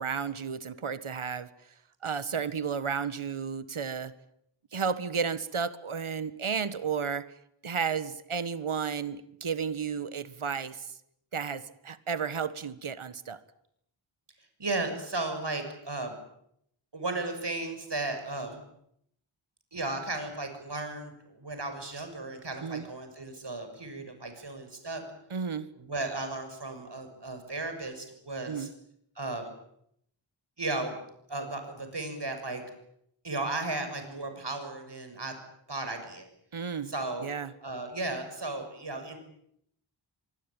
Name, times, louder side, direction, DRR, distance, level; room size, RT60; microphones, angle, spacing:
voice 1, 0.0-1.5 2.0-4.1 4.7-7.3 7.6-11.0 11.3-13.4 22.6-22.9 25.3-25.7 28.5-28.7 36.5-36.9 37.2-37.5, right 6 dB, 85° right, 14 dB, 1.6 m, -33 dB
voice 2, 14.6-16.2 16.9-18.6 19.7-25.0 25.8-28.7 29.2-29.5 30.6-31.0 31.3-32.6 33.2-35.3 35.7-36.3 36.9-37.3 37.6-39.2, right 2 dB, 55° right, 7 dB, 6.8 m, -35 dB
25.0 x 21.5 x 9.1 m, 0.74 s
wide cardioid pair, 55°, 49 cm